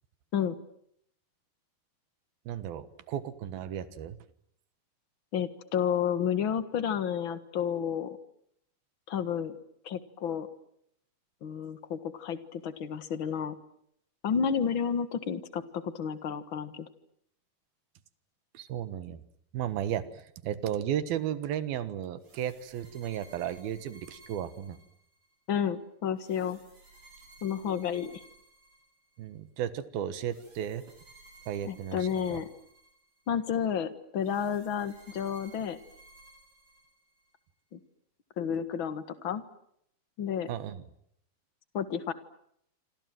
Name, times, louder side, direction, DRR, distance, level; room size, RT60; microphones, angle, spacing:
voice 1, 2.5-4.2 18.5-19.2 19.5-20.1 20.4-24.8 29.2-30.8 31.5-32.4 40.5-40.8, right 10 dB, 75° right, 13 dB, 3.2 m, -34 dB
voice 2, 5.3-8.2 9.1-9.6 9.8-10.5 11.4-13.5 14.2-16.9 25.5-26.6 27.4-28.2 31.6-32.5 33.3-35.8 37.7-37.8 38.4-39.4 40.2-40.5 41.7-42.1, left 8 dB, 50° left, 12 dB, 1.6 m, -31 dB
sound 1, 22.2-25.3 26.2-29.3 30.2-33.4 34.2-37.3, right 3 dB, 50° right, 9.2 m, -57 dB
27.0 x 27.0 x 7.8 m, 0.73 s
omnidirectional pair, 4.4 m